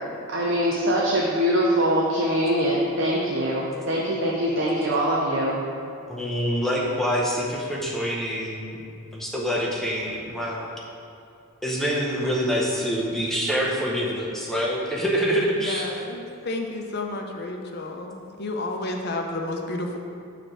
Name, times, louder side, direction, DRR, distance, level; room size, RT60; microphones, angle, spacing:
voice 1, 0.3-5.6, equal, 55° right, -4 dB, 0.7 m, -23 dB
voice 2, 6.1-8.8 9.1-10.7 11.6-15.9, equal, ahead, -4 dB, 0.7 m, -26 dB
voice 3, 15.6-20.0, left 2 dB, 45° left, 2 dB, 0.6 m, -31 dB
6.6 x 3.3 x 6.0 m, 2.4 s
head